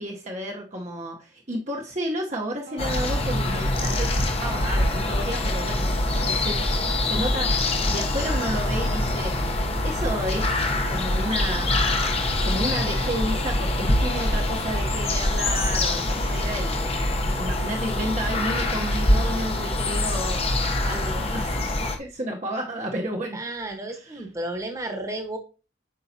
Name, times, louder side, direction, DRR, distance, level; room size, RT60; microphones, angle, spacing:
voice 1, 0.0-6.7 7.0-7.6 7.9-9.3 9.8-11.9 12.4-17.0 17.4-20.4 20.8-21.6 22.0-23.4 23.9-24.3, right 1 dB, 35° right, 0 dB, 0.9 m, -32 dB
sound 1, 2.7-19.7, right 2 dB, 65° right, 1.0 m, -43 dB
sound 2, 2.8-22.0, left 1 dB, 30° left, 0.8 m, -24 dB
voice 2, 23.3-25.4, right 1 dB, 15° right, 4 dB, 1.2 m, -32 dB
8.4 x 5.5 x 2.7 m, 0.33 s
head